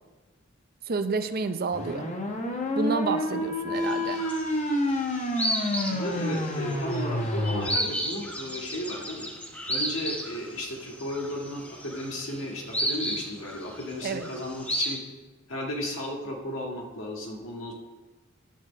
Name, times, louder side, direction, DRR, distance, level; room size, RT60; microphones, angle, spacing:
voice 1, 0.9-2.1 2.8-4.2 14.0-14.3, right 3 dB, 50° right, 9 dB, 0.6 m, -29 dB
sound 1, 1.7-7.7, left 1 dB, 35° left, 1.0 m, -29 dB
sound 2, 3.9-4.7 5.0-15.0, equal, 5° left, 0.9 m, -33 dB
voice 2, 5.9-9.3 9.7-15.0 15.5-17.7, left 1 dB, 70° left, -1 dB, 1.8 m, -34 dB
10.0 x 4.4 x 7.1 m, 1.2 s
head